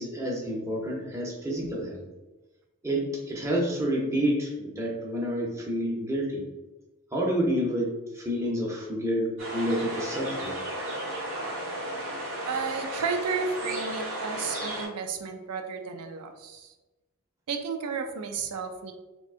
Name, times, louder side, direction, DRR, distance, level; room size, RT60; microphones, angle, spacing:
voice 1, 0.0-2.0 2.8-6.4 7.1-10.5, equal, 15° right, -2 dB, 0.5 m, -29 dB
sound 1, 9.4-14.9, right 1 dB, 55° right, 1.2 m, -34 dB
voice 2, 12.4-16.7 17.5-18.9, right 5 dB, 85° right, 5 dB, 0.4 m, -32 dB
3.5 x 2.6 x 2.4 m, 1.1 s
head